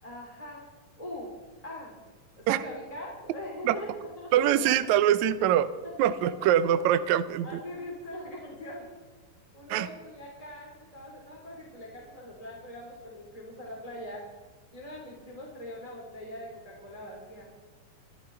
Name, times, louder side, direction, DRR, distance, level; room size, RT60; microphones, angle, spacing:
voice 1, 0.0-0.7 1.0-1.4 1.6-2.0 2.3-4.7 5.8-6.8 7.4-8.9 9.5-14.3 14.7-17.5, left 1 dB, 10° left, -4 dB, 2.9 m, -42 dB
voice 2, 4.3-5.7 6.0-7.5 9.7-9.9, right 11 dB, 75° right, 12 dB, 1.8 m, -23 dB
24.5 x 12.5 x 4.5 m, 1.3 s
omnidirectional pair, 3.8 m